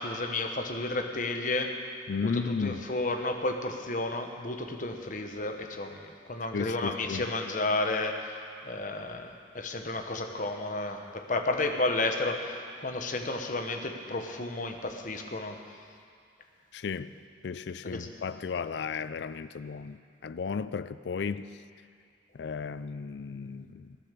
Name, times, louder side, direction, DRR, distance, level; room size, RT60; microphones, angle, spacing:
voice 1, 0.0-1.7 2.2-15.8 17.8-18.1, left 2 dB, 45° left, 4 dB, 1.2 m, -32 dB
voice 2, 2.1-2.9 6.5-7.3 16.7-17.1 17.4-21.5 22.3-24.0, left 5 dB, 65° left, 14 dB, 0.4 m, -34 dB
17.0 x 10.0 x 6.8 m, 2.3 s
head